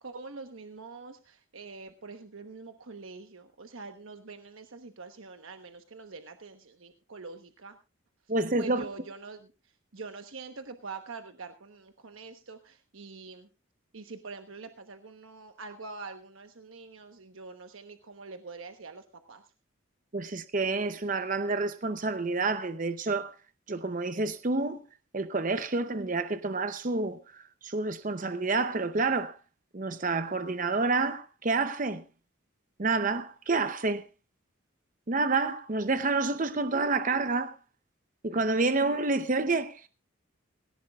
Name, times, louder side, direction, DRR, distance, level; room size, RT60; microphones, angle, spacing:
voice 1, 0.0-7.8 8.6-13.5 13.9-19.4, right 4 dB, 70° right, 1.1 m, -45 dB
voice 2, 8.3-8.8 20.1-23.3 23.7-24.8 25.1-29.4 29.7-32.0 32.8-34.0 35.1-37.5 38.2-39.9, right 3 dB, 40° right, 0.7 m, -29 dB
18.0 x 18.0 x 2.4 m
head